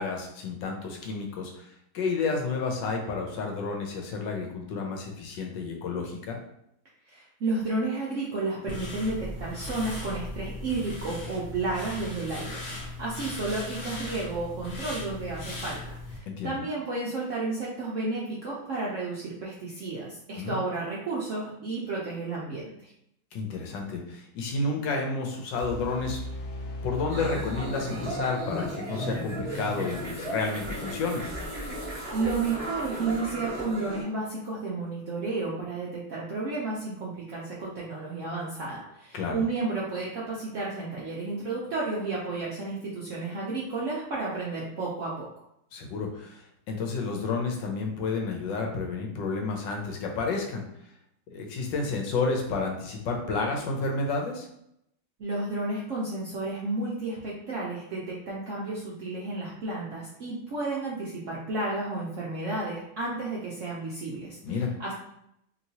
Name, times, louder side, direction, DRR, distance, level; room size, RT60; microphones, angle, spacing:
voice 1, 0.0-1.6 1.9-6.4 16.3-16.5 20.4-20.6 23.3-26.2 26.8-31.2 39.1-39.3 45.7-50.6 51.3-54.5 64.4-64.7, left 4 dB, 85° left, 2 dB, 1.3 m, -31 dB
voice 2, 7.1-15.8 16.1-22.9 32.1-45.3 55.2-64.9, right 3 dB, 70° right, -5 dB, 0.7 m, -32 dB
sound 1, 8.7-16.2, left 2 dB, 45° left, 1.1 m, -38 dB
sound 2, 25.6-28.6, left 1 dB, 65° left, 0.5 m, -38 dB
sound 3, 27.1-34.0, right 1 dB, 10° left, 0.7 m, -35 dB
3.0 x 2.9 x 2.7 m, 0.78 s
omnidirectional pair, 2.0 m